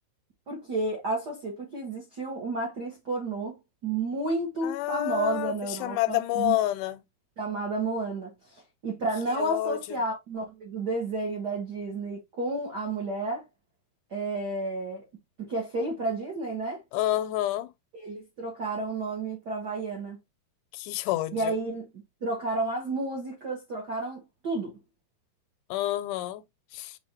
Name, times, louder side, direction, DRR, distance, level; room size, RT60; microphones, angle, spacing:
voice 1, 0.5-6.6 7.4-13.4 14.1-15.0 15.5-16.8 17.9-20.2 21.3-24.7, right 2 dB, 70° right, 0.9 m, -31 dB
voice 2, 4.6-7.0 9.4-10.0 16.9-17.7 20.7-21.5 25.7-26.4 26.7-27.0, left 15 dB, 85° left, 2.1 m, -29 dB
6.9 x 2.6 x 2.8 m
omnidirectional pair, 3.6 m